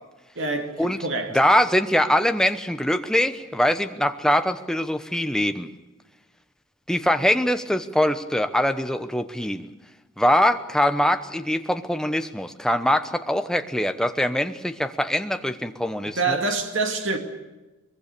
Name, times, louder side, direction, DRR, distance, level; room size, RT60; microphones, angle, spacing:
voice 1, 0.4-1.4 16.2-17.2, right 3 dB, 65° right, 2.3 m, -26 dB
voice 2, 1.3-5.7 6.9-9.7 10.2-16.4, left 1 dB, 5° left, 0.9 m, -23 dB
23.0 x 21.5 x 6.8 m
head